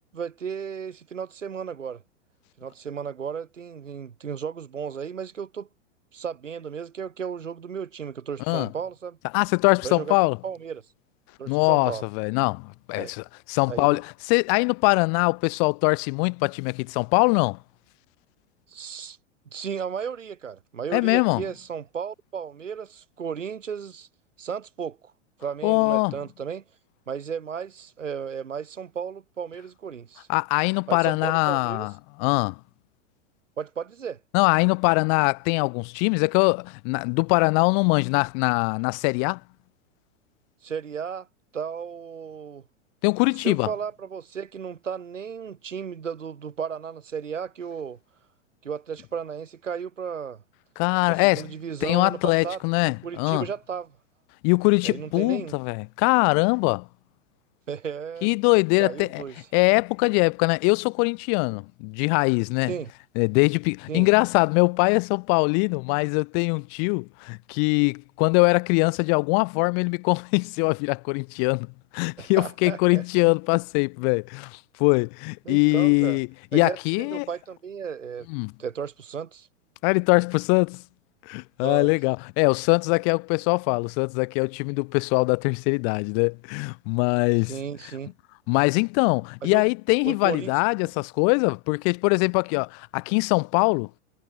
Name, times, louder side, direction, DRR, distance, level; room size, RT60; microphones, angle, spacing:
voice 1, 0.1-2.0 2.6-5.7 6.1-9.2 9.8-10.8 11.4-12.0 12.9-13.1 13.7-14.0 18.7-19.2 19.5-24.1 24.4-25.1 25.4-26.6 27.1-30.3 30.9-31.9 33.6-34.2 40.6-41.3 41.5-42.7 43.4-48.0 48.6-50.4 51.1-54.0 54.8-55.6 57.7-58.3 58.8-59.4 62.7-62.9 63.9-64.1 72.2-73.3 75.5-76.2 76.5-78.3 78.6-79.5 81.6-81.9 87.5-88.1 89.4-89.6 90.0-90.5, right 7 dB, 90° right, 3.8 m, -34 dB
voice 2, 9.3-10.4 11.5-17.6 20.9-21.4 25.6-26.1 30.3-31.9 32.2-32.6 34.3-39.4 43.0-43.7 50.8-51.5 51.8-53.5 54.4-56.9 58.2-59.2 59.5-62.7 63.2-71.7 71.9-77.3 78.3-78.5 79.8-80.8 81.3-87.5 88.5-94.0, left 40 dB or more, 50° left, 2.8 m, -22 dB
hypercardioid pair, 105°, 37 cm